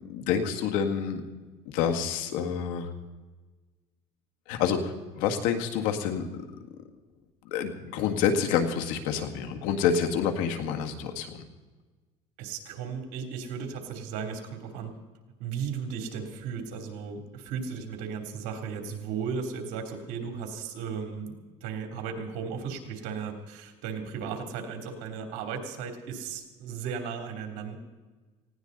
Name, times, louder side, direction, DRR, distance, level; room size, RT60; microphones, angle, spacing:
voice 1, 0.1-1.2 1.7-2.9 4.5-6.3 7.5-11.4, left 7 dB, 80° left, 5 dB, 2.0 m, -28 dB
voice 2, 12.4-14.9 15.4-27.8, right 6 dB, 75° right, 4 dB, 3.2 m, -35 dB
19.0 x 16.5 x 4.1 m, 1.3 s
cardioid pair, 125°, 14 cm